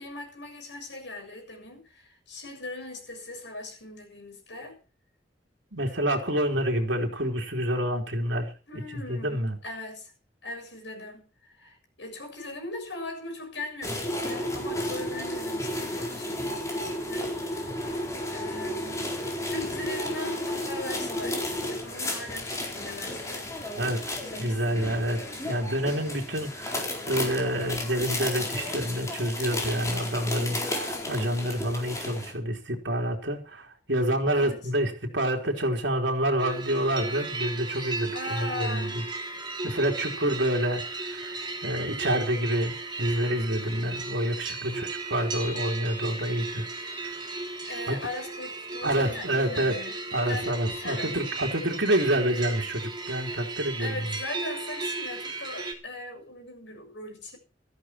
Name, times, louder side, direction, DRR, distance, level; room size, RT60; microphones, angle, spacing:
voice 1, 0.0-4.8 8.7-10.1 10.4-18.0 18.3-23.5 24.2-25.5 34.3-34.6 38.1-39.0 44.6-44.9 47.7-50.0 50.3-50.5 50.8-51.2 53.8-57.4, left 2 dB, 85° left, 7.0 m, -40 dB
voice 2, 5.7-9.6 23.8-25.2 25.5-39.0 39.6-41.3 41.6-46.7 47.9-48.0 48.8-49.8 50.1-54.0, right 1 dB, 80° right, 3.7 m, -28 dB
sound 1, 13.8-32.3, left 1 dB, 20° left, 4.3 m, -33 dB
sound 2, 36.4-55.7, right 3 dB, 25° right, 3.3 m, -35 dB
16.5 x 14.0 x 4.6 m
head